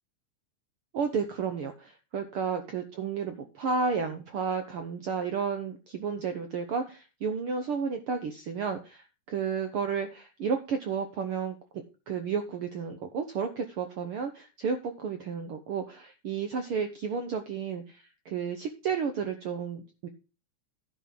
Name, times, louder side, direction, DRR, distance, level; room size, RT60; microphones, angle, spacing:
voice 1, 0.9-20.1, right 5 dB, 65° right, 6 dB, 1.4 m, -32 dB
11.0 x 4.3 x 7.4 m, 0.32 s
omnidirectional pair, 3.5 m